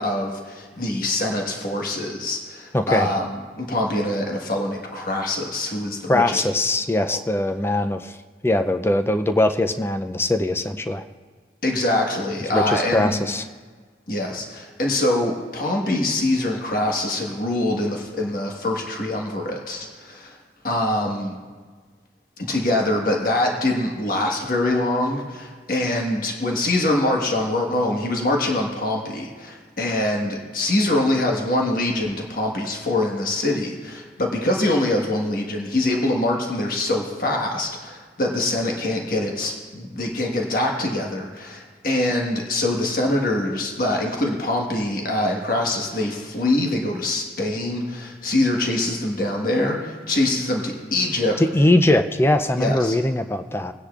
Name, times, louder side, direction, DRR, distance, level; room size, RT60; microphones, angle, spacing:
voice 1, 0.0-6.4 11.6-13.3 14.1-20.4 20.6-21.3 22.4-51.4 52.6-53.0, left 1 dB, 50° left, 0 dB, 1.4 m, -24 dB
voice 2, 2.7-3.1 6.1-8.2 8.4-11.0 12.5-13.5 51.4-53.7, left 1 dB, 15° left, 8 dB, 0.4 m, -21 dB
20.5 x 10.0 x 2.4 m, 1.5 s
head